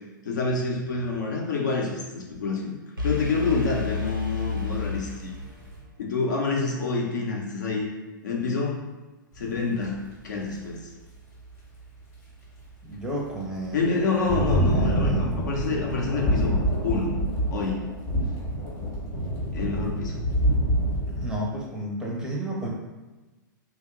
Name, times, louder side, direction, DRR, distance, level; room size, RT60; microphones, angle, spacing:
voice 1, 0.2-2.7 3.0-5.3 6.0-7.9 8.2-8.8 9.4-10.9 13.7-16.5 16.8-17.2 17.5-17.9 19.5-20.2, left 4 dB, 60° left, -1 dB, 0.7 m, -27 dB
sound 1, 3.0-5.9, left 4 dB, 85° right, 0.7 m, -31 dB
sound 2, 3.6-5.8 9.4-9.8 10.3-10.5 11.8-11.9 12.6-12.7 13.0-13.3 13.9-21.4, right 1 dB, 20° left, 0.9 m, -27 dB
voice 2, 12.8-13.8 14.3-14.4 14.7-15.3 21.1-22.7, right 1 dB, 5° right, -4 dB, 0.6 m, -32 dB
2.9 x 2.1 x 3.6 m, 1.2 s
figure-of-eight pair, 105°, 11 cm